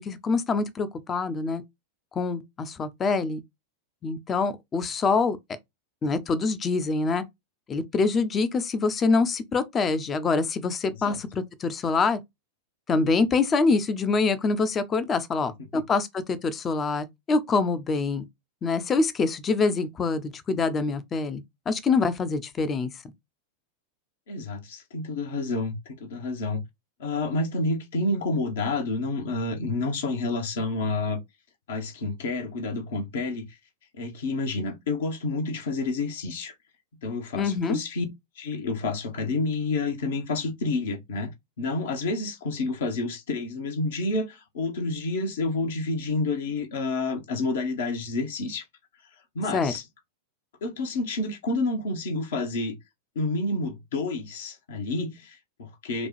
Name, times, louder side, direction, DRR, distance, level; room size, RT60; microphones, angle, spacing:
voice 1, 0.0-1.6 2.1-3.4 4.0-5.4 6.0-7.2 7.7-12.2 12.9-18.2 18.6-21.4 21.7-22.9 37.4-37.8 49.5-49.7, left 4 dB, 25° left, 0.6 m, -25 dB
voice 2, 24.3-26.6 27.0-31.2 31.7-33.5 33.9-36.5 37.0-38.0 38.4-48.6 49.3-49.8 50.6-52.8 53.1-56.1, left 3 dB, 60° left, 1.1 m, -29 dB
5.0 x 2.3 x 3.1 m
figure-of-eight pair, 90°, 0 cm